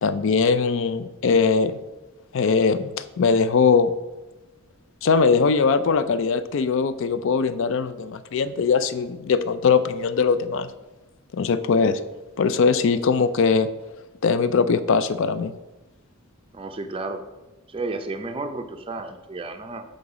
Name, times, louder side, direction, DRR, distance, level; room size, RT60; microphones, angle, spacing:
voice 1, 0.0-1.8 2.3-3.9 5.0-10.7 11.3-12.0 12.4-13.7 14.2-15.5, left 5 dB, 60° left, 13 dB, 0.4 m, -21 dB
voice 2, 16.5-17.2 17.7-19.8, right 3 dB, 25° right, 7 dB, 0.5 m, -32 dB
7.0 x 3.9 x 4.8 m, 1.1 s
head